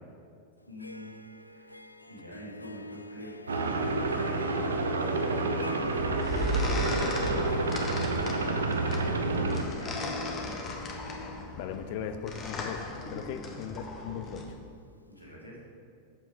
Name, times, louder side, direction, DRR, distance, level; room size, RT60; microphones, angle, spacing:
Harp, 0.6-14.6, left 2 dB, 85° left, 0.3 m, -43 dB
voice 1, 0.7-1.2 1.5-3.7 4.1-9.1 9.7-10.6 15.2-15.6, equal, 90° right, -5 dB, 2.2 m, -45 dB
sound 1, 3.5-9.6, right 3 dB, 70° right, 0.7 m, -29 dB
sound 2, 5.8-14.5, left 1 dB, 25° left, 1.3 m, -36 dB
voice 2, 11.6-14.6, left 8 dB, 50° left, 9 dB, 0.6 m, -38 dB
7.9 x 7.3 x 5.1 m, 2.3 s
figure-of-eight pair, 90°, 0 cm